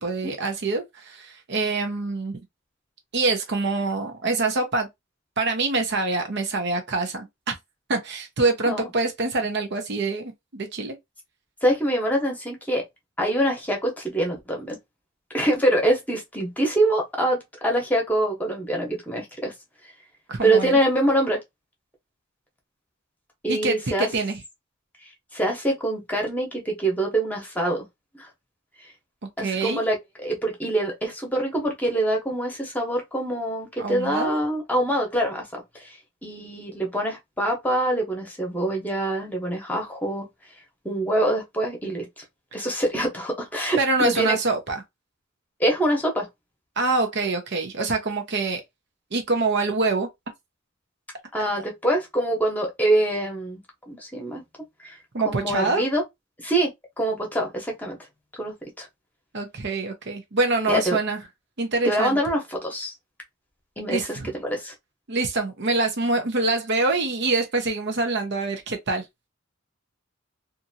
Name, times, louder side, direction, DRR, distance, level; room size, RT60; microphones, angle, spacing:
voice 1, 0.0-2.4 3.1-4.9 5.4-7.5 7.9-10.9 20.3-20.8 23.5-24.4 29.4-29.8 33.8-34.4 43.8-44.8 46.8-48.6 49.1-50.1 55.1-55.8 59.3-61.2 61.6-62.2 63.9-64.3 65.1-69.0, right 3 dB, 60° right, 0.8 m, -25 dB
voice 2, 11.6-12.8 13.2-14.8 15.3-19.5 20.4-21.4 23.4-24.1 25.3-27.8 28.1-28.3 29.4-30.0 30.2-36.0 36.2-40.3 40.8-42.2 42.5-44.4 45.6-46.3 51.3-53.6 53.9-54.4 54.8-55.0 55.2-56.0 56.4-56.7 57.0-58.0 58.4-58.9 60.7-61.0 61.8-62.9 63.8-64.7, right 1 dB, 10° left, 1.0 m, -25 dB
2.7 x 2.6 x 2.7 m
head